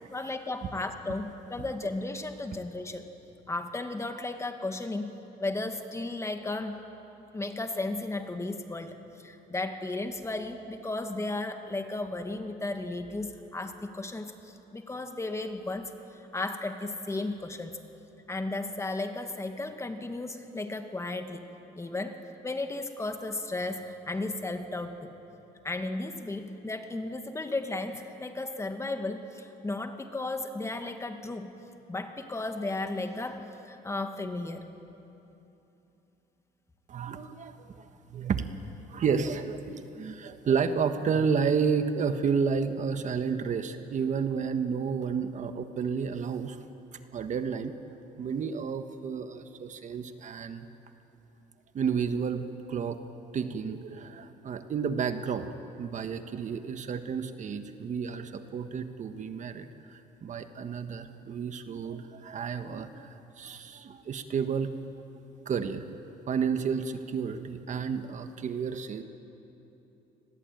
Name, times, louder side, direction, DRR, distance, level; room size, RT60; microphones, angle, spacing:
voice 1, 0.1-3.1 3.5-5.1 5.4-6.8 7.3-9.0 9.2-14.3 14.7-15.9 16.3-17.8 18.3-21.5 21.8-25.1 25.6-31.5 31.9-34.7, left 2 dB, 15° left, 6 dB, 2.0 m, -34 dB
voice 2, 36.9-38.5 38.9-46.6 47.1-47.7 48.2-50.7 51.7-53.0 53.3-64.7 65.4-66.0 66.3-69.0, right 6 dB, 45° right, 8 dB, 1.5 m, -31 dB
28.5 x 21.0 x 9.3 m, 3.0 s
cardioid pair, 110°, 17 cm